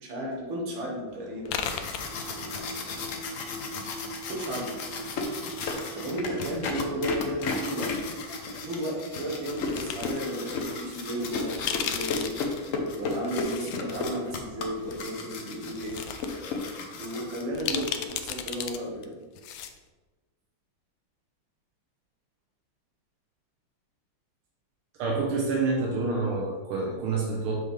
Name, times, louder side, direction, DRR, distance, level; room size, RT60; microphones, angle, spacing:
voice 1, 0.0-1.8 2.5-3.1 4.3-4.8 5.9-7.9 8.6-12.4 12.9-16.0 17.0-19.2, equal, 70° right, -1 dB, 2.2 m, -34 dB
sound 1, 1.4-2.7 2.9-3.9 4.7-5.7 6.0-7.5 8.8-8.9 9.5-10.2 10.6-10.7 11.3-13.8 14.2-14.3 15.1-15.2 15.6-16.3 16.6-16.7 17.5-18.8 19.0-19.1 19.3-19.8, left 8 dB, 80° left, 1.3 m, -35 dB
sound 2, 1.4-17.8, left 3 dB, 60° left, 0.8 m, -34 dB
sound 3, 2.1-12.1, right 2 dB, 30° right, 2.5 m, -44 dB
voice 2, 24.9-27.6, right 3 dB, 85° right, -2 dB, 1.8 m, -27 dB
7.1 x 5.6 x 3.3 m, 1.3 s
omnidirectional pair, 2.3 m